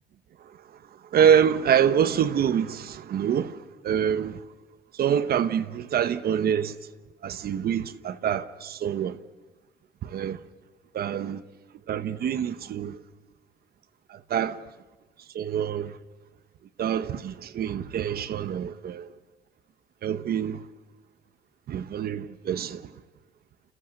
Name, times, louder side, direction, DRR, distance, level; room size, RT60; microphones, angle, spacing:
voice 1, 1.1-3.6 3.8-4.4 5.0-6.7 7.2-9.2 10.0-10.4 10.9-11.4 11.9-13.0 14.3-14.6 15.3-15.9 16.8-19.1 20.0-20.6 21.7-22.8, right 8 dB, 60° right, 1.1 m, -25 dB
30.0 x 27.5 x 6.5 m
cardioid pair, 140°, 18 cm